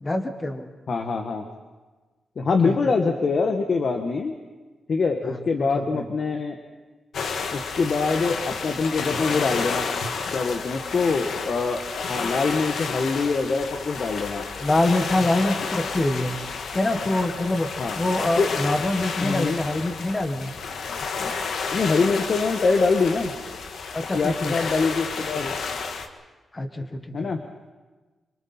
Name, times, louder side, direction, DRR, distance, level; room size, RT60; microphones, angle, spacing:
voice 1, 0.0-0.7 2.6-2.8 5.2-6.0 14.6-16.4 16.7-17.7 17.9-20.5 23.9-24.5 26.5-27.3, left 2 dB, 20° left, 6 dB, 1.5 m, -25 dB
voice 2, 0.9-1.4 2.4-4.3 4.9-6.6 7.5-9.9 10.3-11.8 12.1-14.5 17.8-18.0 18.4-18.6 19.2-19.6 21.7-23.3 24.1-25.5 27.1-27.4, left 4 dB, 50° left, 4 dB, 1.4 m, -24 dB
sound 1, 7.1-26.1, left 5 dB, 80° left, 1.5 m, -31 dB
26.5 x 24.0 x 4.4 m, 1.3 s
wide cardioid pair, 140°, 0 cm